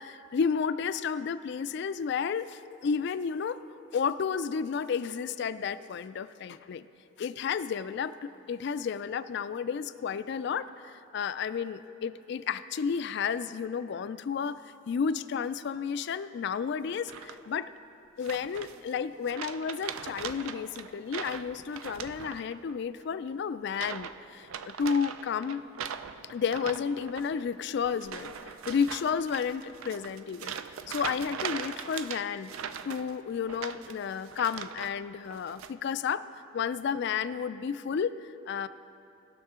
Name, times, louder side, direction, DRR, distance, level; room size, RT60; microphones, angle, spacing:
voice 1, 0.0-3.6 3.9-6.9 7.2-14.6 14.9-17.7 18.2-25.6 26.3-30.6 30.9-32.5 32.8-36.2 36.5-38.7, left 6 dB, 55° left, 14 dB, 0.3 m, -32 dB
sound 1, 17.1-17.6 18.2-18.9 19.3-22.7 23.0-23.3 23.7-24.2 24.4-34.9 35.3-35.7, right 7 dB, 90° right, 0.4 m, -40 dB
19.0 x 6.4 x 3.7 m, 2.7 s
head